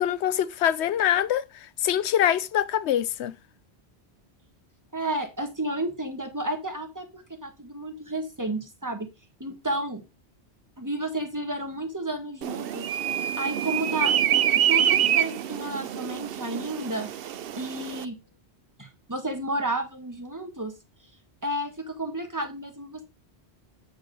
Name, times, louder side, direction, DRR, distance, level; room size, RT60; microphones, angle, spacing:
voice 1, 0.0-3.3, left 10 dB, 80° left, 0.9 m, -24 dB
voice 2, 4.9-9.1 9.4-10.0 10.8-12.9 13.4-14.1 14.6-17.1 17.6-18.2 18.8-20.7 21.4-23.0, right 1 dB, 15° right, 1.5 m, -32 dB
sound 1, 12.4-18.0, right 10 dB, 65° right, 0.7 m, -26 dB
8.5 x 4.7 x 4.7 m
omnidirectional pair, 1.1 m